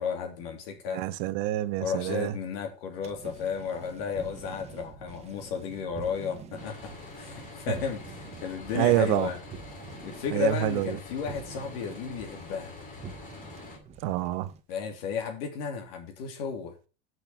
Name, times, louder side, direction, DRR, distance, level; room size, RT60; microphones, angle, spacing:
voice 1, 0.0-1.0 1.8-9.4 10.0-12.7 14.7-16.7, left 6 dB, 80° left, 3.4 m, -33 dB
voice 2, 0.9-2.3 8.7-9.3 10.3-11.0 14.0-14.5, right 15 dB, 55° right, 0.8 m, -27 dB
sound 1, 3.0-14.6, right 6 dB, 20° right, 0.8 m, -47 dB
sound 2, 6.6-13.8, left 3 dB, 30° left, 2.4 m, -45 dB
6.5 x 6.2 x 7.1 m
cardioid pair, 165°, 29 cm